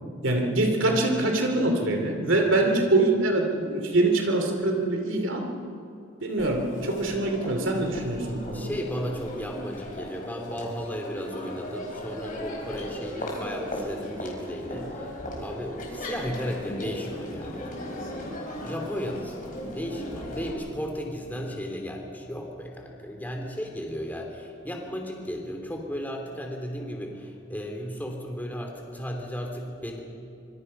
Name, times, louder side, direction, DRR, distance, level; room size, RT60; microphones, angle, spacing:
voice 1, 0.2-5.4 6.2-8.7, right 2 dB, 70° right, 3 dB, 2.7 m, -24 dB
Crowd, 6.4-20.5, left 1 dB, 40° left, 4.8 m, -37 dB
voice 2, 8.5-15.1 15.4-17.6 18.6-30.0, equal, 10° left, 1 dB, 2.9 m, -35 dB
25.5 x 25.0 x 5.5 m, 2.6 s
head